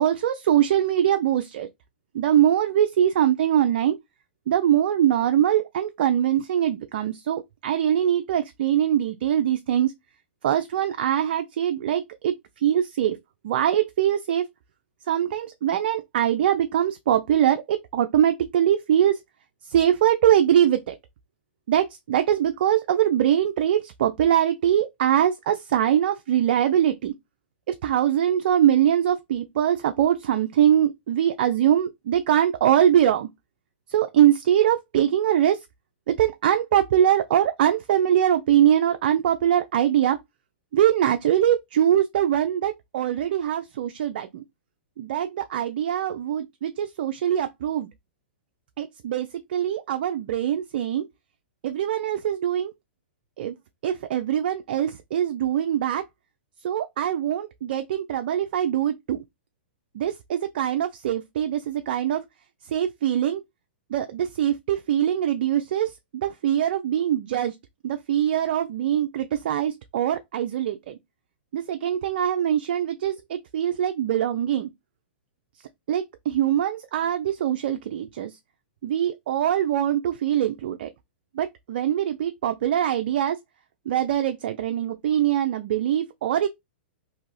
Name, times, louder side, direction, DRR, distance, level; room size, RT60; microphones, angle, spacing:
voice 1, 0.0-1.7 2.1-4.0 4.5-9.9 10.4-12.3 12.6-13.2 13.4-14.5 15.1-19.2 19.7-20.9 21.7-27.1 27.8-33.3 33.9-35.6 36.1-40.2 40.7-44.4 45.0-47.9 48.8-51.0 51.6-52.7 53.4-53.5 53.8-56.0 56.6-59.2 59.9-62.2 62.7-63.4 63.9-65.9 66.2-67.5 67.8-71.0 71.5-74.7 75.9-78.3 78.8-80.9 81.4-83.4 83.9-86.5, right 10 dB, 60° right, 0.4 m, -22 dB
2.7 x 2.4 x 3.1 m
hypercardioid pair, 125°, 6 cm